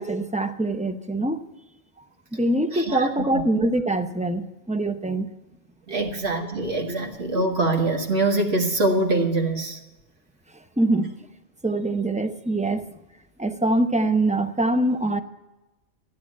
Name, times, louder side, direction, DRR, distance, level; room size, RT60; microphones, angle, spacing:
voice 1, 0.0-1.4 2.3-5.3 5.9-6.1 6.9-7.0 10.8-11.1 11.6-12.9 13.4-15.2, right 2 dB, 10° right, 9 dB, 0.5 m, -24 dB
voice 2, 2.7-3.1 5.9-9.8, right 2 dB, 60° right, 1 dB, 2.1 m, -24 dB
14.5 x 10.0 x 7.5 m, 1.1 s
omnidirectional pair, 1.2 m